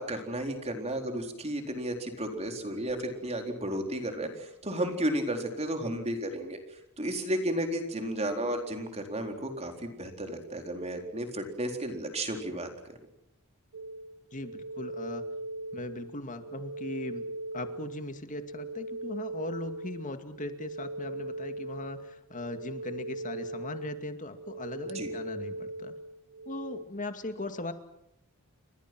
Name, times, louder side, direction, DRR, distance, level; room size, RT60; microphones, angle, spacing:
voice 1, 0.0-6.6 7.0-12.9 24.9-25.1, right 1 dB, 30° right, 4 dB, 4.1 m, -33 dB
sound 1, 13.7-26.8, right 1 dB, 90° right, 1.2 m, -40 dB
voice 2, 14.3-15.2 15.7-17.3 17.5-25.9 26.5-27.7, left 2 dB, 35° left, 8 dB, 2.3 m, -39 dB
30.0 x 25.0 x 6.2 m, 0.77 s
head